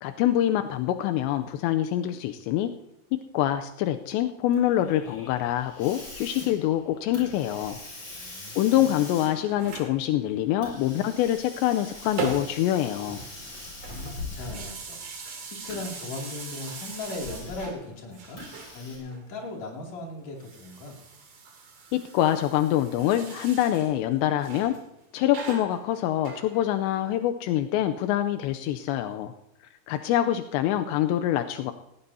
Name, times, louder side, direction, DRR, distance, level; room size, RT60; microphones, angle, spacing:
voice 1, 0.0-2.7 3.3-7.8 8.6-13.2 21.9-24.8 25.1-29.3 29.9-31.7, left 12 dB, 85° left, 7 dB, 2.8 m, -25 dB
Hiss, 4.5-14.9 15.6-17.9 18.4-19.0, left 2 dB, 25° left, 6.0 m, -43 dB
voice 2, 8.1-8.9 13.6-15.0 15.4-18.4 18.7-21.0, left 2 dB, 45° left, -1 dB, 3.5 m, -38 dB
sound 1, 9.1-10.0 11.4-12.7 13.0-17.8 18.1-19.2 20.3-23.9 24.4-24.8 25.3-26.9, right 5 dB, 50° right, 3.2 m, -40 dB
18.5 x 16.5 x 2.8 m, 0.83 s
omnidirectional pair, 5.1 m